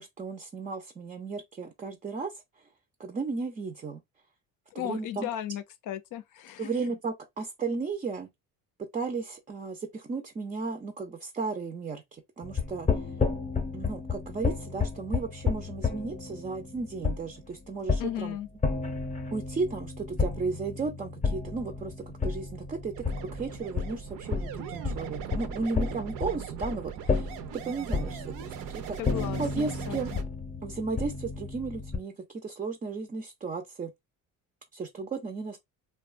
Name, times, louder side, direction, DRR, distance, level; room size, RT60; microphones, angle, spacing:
voice 1, 0.0-2.3 3.0-4.0 4.7-5.3 6.6-8.3 8.8-12.9 13.7-18.4 19.3-29.0 29.4-30.1 30.6-33.9 34.7-35.6, right 4 dB, 20° right, 0.4 m, -34 dB
voice 2, 4.7-6.7 18.0-18.5 29.0-30.2, left 12 dB, 65° left, 0.5 m, -36 dB
sound 1, 12.4-32.0, left 4 dB, 20° left, 0.7 m, -32 dB
sound 2, 22.9-30.2, right 9 dB, 70° right, 0.6 m, -40 dB
2.8 x 2.2 x 2.4 m
cardioid pair, 105°, 35 cm